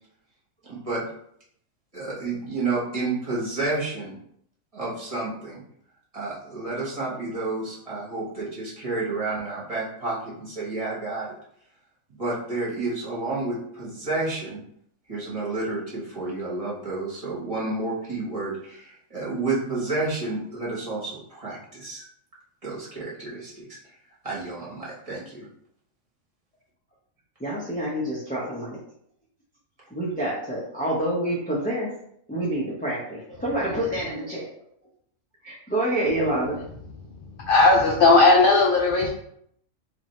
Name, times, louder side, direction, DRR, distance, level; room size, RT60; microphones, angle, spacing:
voice 1, 0.6-1.0 1.9-4.1 4.7-5.6 6.1-11.4 12.2-14.6 15.1-22.0 22.6-23.8 24.2-25.5, right 3 dB, 25° right, -7 dB, 1.1 m, -30 dB
voice 2, 27.4-28.8 29.9-31.9 32.3-34.5 35.4-36.6, right 1 dB, 10° left, -7 dB, 0.4 m, -27 dB
voice 3, 37.4-39.1, left 3 dB, 70° left, 0 dB, 0.5 m, -17 dB
3.1 x 2.5 x 4.1 m, 0.69 s
omnidirectional pair, 1.4 m